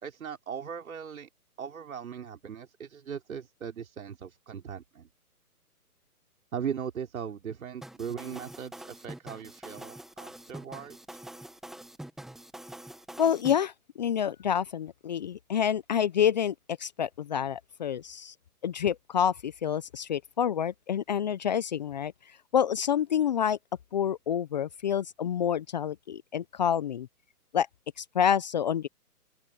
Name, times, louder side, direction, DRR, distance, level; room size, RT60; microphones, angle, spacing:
voice 1, 0.0-1.3 1.6-5.1 6.5-11.0, right 7 dB, 60° right, 4.7 m, -38 dB
sound 1, 7.8-13.6, right 1 dB, ahead, 1.3 m, -45 dB
voice 2, 13.2-18.3 18.6-22.1 22.5-23.6 23.9-27.1 27.5-27.7 28.0-28.9, left 8 dB, 30° left, 0.8 m, -28 dB
open air
hypercardioid pair, 150°, 46 cm